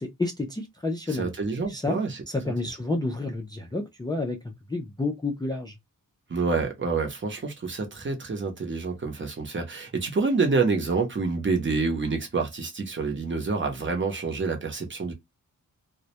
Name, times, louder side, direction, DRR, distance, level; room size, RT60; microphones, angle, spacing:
voice 1, 0.0-1.3 1.7-2.0 2.3-4.4 4.7-5.7, left 2 dB, 15° left, 0.4 m, -29 dB
voice 2, 1.1-2.5 6.3-15.1, right 4 dB, 35° right, 0.7 m, -27 dB
2.2 x 2.1 x 2.7 m
wide cardioid pair, 180°, 32 cm